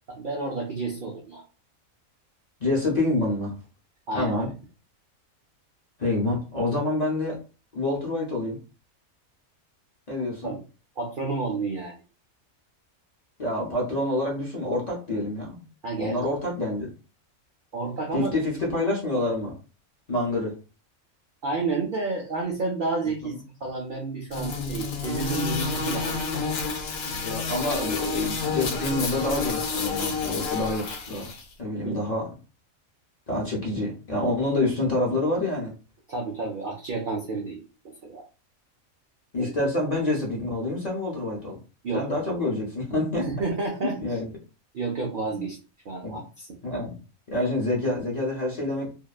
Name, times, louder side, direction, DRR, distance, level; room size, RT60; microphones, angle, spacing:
voice 1, 0.2-1.4 4.1-4.3 10.4-10.6 11.0-12.0 15.8-16.2 17.7-18.3 18.7-18.8 21.4-23.4 23.6-26.6 31.8-32.0 36.1-38.2 39.4-39.5 41.8-42.1 43.3-44.0 44.7-45.6 45.9-46.5, right 3 dB, 85° right, 0 dB, 0.4 m, -30 dB
voice 2, 2.6-3.5 4.1-4.5 6.0-7.4 7.7-8.6 10.1-10.5 13.4-15.6 16.0-16.9 18.1-19.5 20.1-20.5 23.2-23.4 27.0-31.3 31.6-32.3 33.3-35.7 39.3-41.6 41.9-43.3 43.8-44.3 45.3-45.4 46.0-46.2 46.6-47.0 47.3-48.9, left 2 dB, 45° left, -3 dB, 0.5 m, -27 dB
sound 1, 24.3-31.4, left 5 dB, 75° left, 1.1 m, -29 dB
2.7 x 2.1 x 2.3 m, 0.33 s
omnidirectional pair, 1.5 m